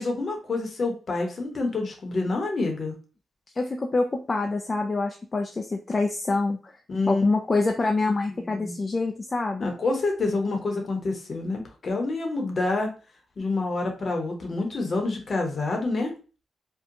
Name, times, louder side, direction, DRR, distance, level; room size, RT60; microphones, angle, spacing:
voice 1, 0.0-2.9 6.9-7.2 8.4-8.7 9.6-12.9 13.4-16.1, left 3 dB, 50° left, 2 dB, 0.8 m, -27 dB
voice 2, 3.6-6.7 7.1-9.7, left 3 dB, 35° left, 3 dB, 0.3 m, -26 dB
2.7 x 2.2 x 2.5 m, 0.35 s
cardioid pair, 70°, 0 cm